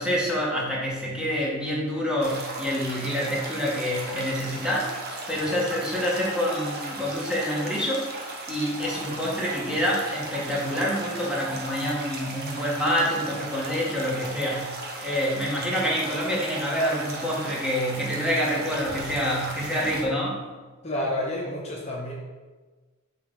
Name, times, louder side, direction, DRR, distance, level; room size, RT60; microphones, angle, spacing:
voice 1, 0.0-8.1 8.5-14.7 15.0-20.4, equal, 5° right, -5 dB, 1.3 m, -27 dB
sound 1, 2.2-20.0, right 2 dB, 50° right, 0.9 m, -37 dB
voice 2, 20.8-22.1, left 1 dB, 30° left, -3 dB, 0.8 m, -29 dB
7.4 x 3.7 x 3.7 m, 1.3 s
head